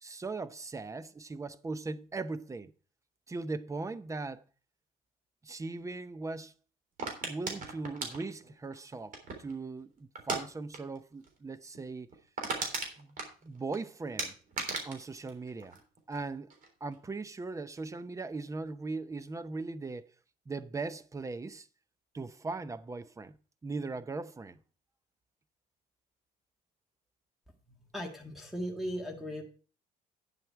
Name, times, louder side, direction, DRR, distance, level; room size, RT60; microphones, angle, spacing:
voice 1, 0.0-2.7 3.3-4.4 5.4-6.5 7.2-12.2 13.0-13.2 13.4-14.3 14.8-15.8 16.1-16.5 16.8-20.1 20.5-21.7 22.1-23.4 23.6-24.6, right 3 dB, 20° right, 0.7 m, -39 dB
sound 1, 7.0-9.6 10.2-10.4 10.7-11.0 11.2-11.3 11.7-11.8 12.1-13.8 14.2-16.2 16.5-17.0, right 4 dB, 55° right, 3.5 m, -37 dB
voice 2, 27.7-29.4, equal, ahead, 1.8 m, -38 dB
10.0 x 7.6 x 4.6 m
cardioid pair, 110°, 17 cm